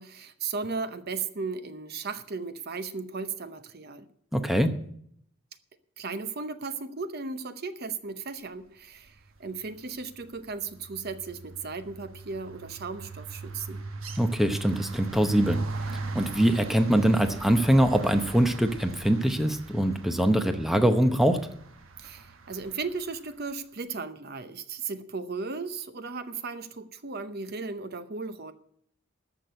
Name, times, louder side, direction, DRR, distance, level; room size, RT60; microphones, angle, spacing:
voice 1, 0.0-4.1 6.0-13.8 22.0-28.5, right 4 dB, 50° right, 11 dB, 0.7 m, -36 dB
voice 2, 4.3-4.7 14.2-15.6 16.1-21.4, right 1 dB, ahead, 7 dB, 0.8 m, -23 dB
sound 1, 9.4-9.7 10.0-23.1, right 3 dB, 80° right, 1.1 m, -39 dB
13.5 x 6.1 x 9.4 m, 0.68 s
head